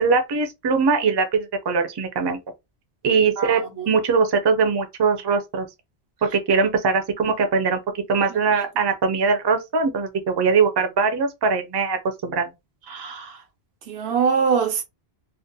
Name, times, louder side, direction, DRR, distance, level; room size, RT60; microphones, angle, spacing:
voice 1, 0.0-2.4 3.0-5.7 6.3-12.5, right 5 dB, 35° right, 0.4 m, -21 dB
voice 2, 3.4-3.9 8.3-8.7 12.9-13.4 13.9-14.8, right 6 dB, 85° right, 0.9 m, -24 dB
2.4 x 2.1 x 2.6 m
omnidirectional pair, 1.0 m